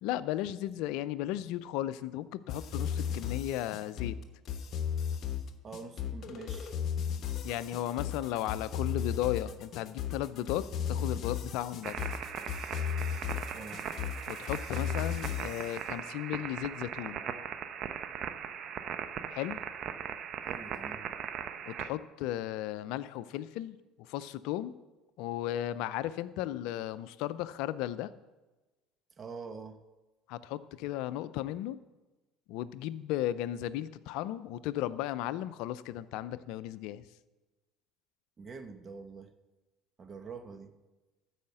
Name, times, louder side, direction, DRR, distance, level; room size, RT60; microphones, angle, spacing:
voice 1, 0.0-4.2 7.4-12.0 14.3-17.2 19.3-19.6 21.7-24.7 25.2-28.1 30.3-31.8 32.5-37.1, left 13 dB, 70° left, 15 dB, 0.5 m, -35 dB
sound 1, 2.5-15.7, left 8 dB, 50° left, 1.1 m, -35 dB
voice 2, 5.6-6.8 13.5-13.9 20.4-21.1 29.2-29.8 38.4-39.3 40.0-40.8, right 5 dB, 35° right, 9 dB, 1.2 m, -45 dB
sound 2, 11.8-21.9, right 8 dB, 55° right, 0.8 m, -39 dB
13.0 x 5.0 x 7.8 m, 1.1 s
hypercardioid pair, 80°, 0 cm